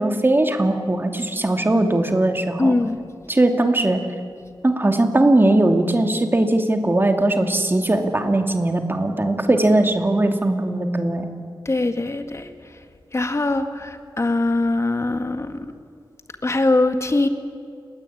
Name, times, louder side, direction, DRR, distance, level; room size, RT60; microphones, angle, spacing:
voice 1, 0.0-2.7 3.3-4.0 4.6-11.3, right 2 dB, 25° right, 4 dB, 2.6 m, -19 dB
voice 2, 2.6-3.0 11.7-12.5 13.1-15.6 16.4-17.3, left 2 dB, 35° left, 7 dB, 1.9 m, -21 dB
29.0 x 20.5 x 8.7 m, 2.2 s
wide cardioid pair, 115°, 9 cm